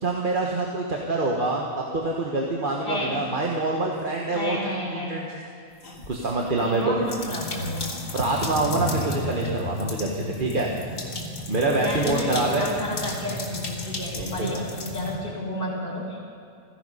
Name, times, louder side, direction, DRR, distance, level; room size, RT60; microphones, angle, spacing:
voice 1, 0.0-5.4 6.1-7.0 8.1-10.7 11.5-12.7 14.1-14.6, right 2 dB, 40° right, -2 dB, 1.5 m, -26 dB
voice 2, 2.8-3.2 4.3-5.2 6.6-7.9 11.8-16.2, equal, 40° left, -4 dB, 3.8 m, -31 dB
sound 1, 5.8-6.4 7.0-15.1, left 1 dB, 80° left, 2.2 m, -33 dB
16.0 x 15.5 x 5.5 m, 2.6 s
omnidirectional pair, 1.3 m